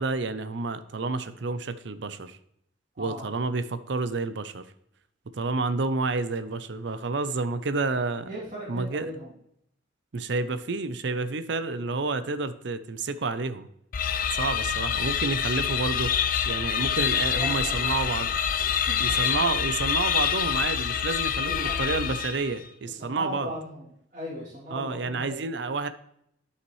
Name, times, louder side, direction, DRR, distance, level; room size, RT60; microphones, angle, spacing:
voice 1, 0.0-2.4 3.0-4.7 5.3-8.3 8.7-9.1 10.1-13.7 14.3-16.2 16.4-18.4 19.0-23.5 24.7-25.9, right 3 dB, 60° right, 12 dB, 0.5 m, -29 dB
voice 2, 2.9-3.3 8.3-9.3 17.3-18.3 18.6-19.2 21.5-22.1 22.8-25.5, equal, 40° right, -11 dB, 2.9 m, -38 dB
sound 1, 13.9-22.6, left 8 dB, 45° left, 0.4 m, -26 dB
10.5 x 5.7 x 3.1 m, 0.73 s
head